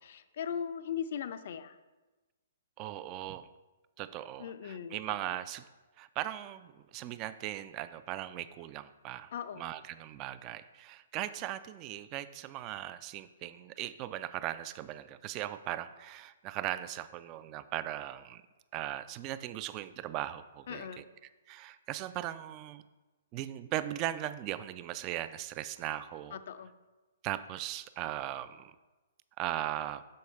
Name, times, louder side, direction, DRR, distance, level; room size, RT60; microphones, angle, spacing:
voice 1, 0.0-1.8 4.4-5.0 5.3-5.4 9.3-9.6 20.7-21.1 26.3-26.7, left 8 dB, 55° left, 12 dB, 0.4 m, -39 dB
voice 2, 2.8-3.5 4.0-5.7 6.0-18.4 18.7-21.0 21.5-22.8 23.3-26.4 27.2-28.8 29.4-30.0, right 13 dB, 30° right, 14 dB, 0.3 m, -38 dB
6.5 x 4.8 x 4.2 m, 1.2 s
figure-of-eight pair, 120°, 0 cm